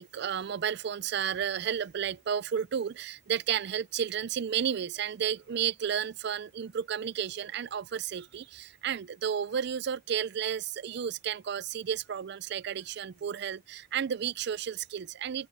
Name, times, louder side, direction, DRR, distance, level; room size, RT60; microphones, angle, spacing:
voice 1, 0.0-15.5, right 8 dB, 60° right, 0.4 m, -32 dB
head